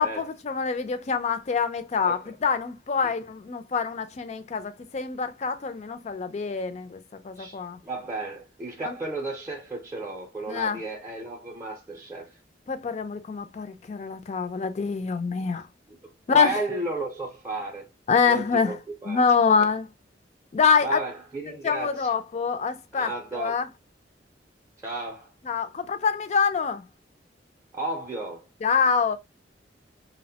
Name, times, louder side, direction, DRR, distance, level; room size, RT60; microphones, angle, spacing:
voice 1, 0.0-7.8 8.8-8.9 10.5-10.8 12.7-15.7 16.3-16.5 18.1-18.8 19.1-19.9 20.5-21.0 21.6-23.7 25.4-26.8 28.6-29.2, left 5 dB, 40° left, 0.4 m, -25 dB
voice 2, 7.4-12.4 16.3-17.9 18.2-18.8 19.0-19.2 20.8-22.1 22.9-23.6 24.8-25.3 27.7-28.5, right 2 dB, 15° right, 0.5 m, -33 dB
2.8 x 2.1 x 2.7 m
head